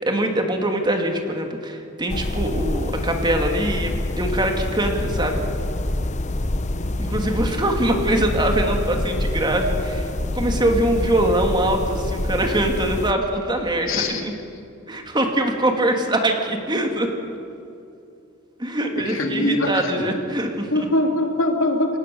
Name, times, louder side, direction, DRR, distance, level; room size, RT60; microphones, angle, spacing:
voice 1, 0.0-5.4 7.0-10.1 10.3-14.3 14.9-17.1 18.6-20.9, right 1 dB, 25° right, 3 dB, 2.6 m, -23 dB
sound 1, 2.1-13.1, left 1 dB, 35° left, 0.8 m, -26 dB
voice 2, 13.9-14.2 19.1-19.8 20.7-22.0, left 1 dB, 90° left, 3 dB, 2.8 m, -22 dB
28.5 x 17.5 x 7.0 m, 2.6 s
head